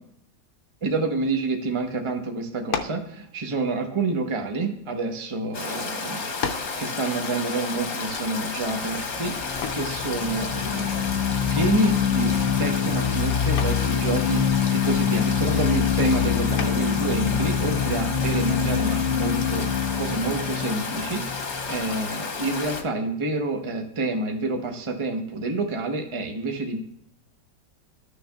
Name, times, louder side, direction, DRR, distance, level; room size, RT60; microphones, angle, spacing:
voice 1, 0.8-6.3 6.8-9.3 9.7-11.0 11.5-14.4 14.7-19.7 20.0-21.2 21.7-26.8, right 2 dB, 40° right, 5 dB, 0.4 m, -28 dB
sound 1, 2.7-3.1 4.0-5.2 5.9-6.0 6.4-6.8 9.6-10.0 11.9-12.2 12.6-13.0 13.6-13.9 16.6-17.0, left 6 dB, 65° left, 1.0 m, -32 dB
Stream, 5.5-22.8, left 4 dB, 45° left, 1.2 m, -32 dB
sound 2, 9.0-22.2, left 8 dB, 85° left, 1.4 m, -25 dB
13.5 x 6.5 x 2.3 m, 0.73 s
omnidirectional pair, 1.9 m